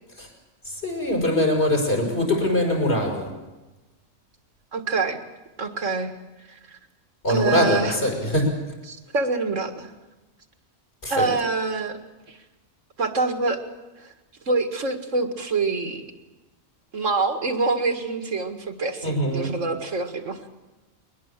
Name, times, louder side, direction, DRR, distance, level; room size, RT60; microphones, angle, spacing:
voice 1, 0.8-3.3 7.2-8.5 11.0-11.3 19.0-19.5, left 1 dB, 55° left, 0 dB, 6.3 m, -22 dB
voice 2, 4.7-5.2 5.6-6.1 6.5-6.8 7.3-8.0 8.9-9.9 11.1-12.0 12.3-12.4 13.0-13.6 14.0-14.1 14.5-16.0 16.9-20.4, right 3 dB, 75° right, 6 dB, 2.2 m, -26 dB
22.5 x 20.5 x 7.5 m, 1.1 s
omnidirectional pair, 1.3 m